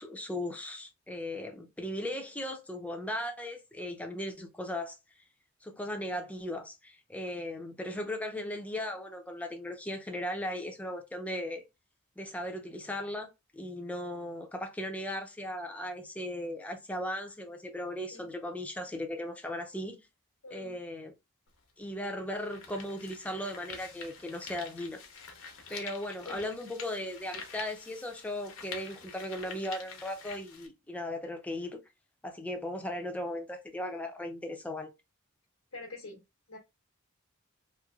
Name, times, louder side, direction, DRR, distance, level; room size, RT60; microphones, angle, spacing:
voice 1, 0.0-5.0 5.6-11.6 12.2-13.3 13.5-20.0 20.5-21.1 21.8-25.0 25.7-31.8 32.2-34.9, left 1 dB, 5° left, 0.6 m, -37 dB
voice 2, 20.4-20.8 26.3-26.5 35.7-36.2 36.5-36.6, left 3 dB, 85° left, 1.0 m, -45 dB
sound 1, 21.5-21.6 22.2-30.7, left 5 dB, 60° left, 0.8 m, -47 dB
3.1 x 2.8 x 2.4 m
head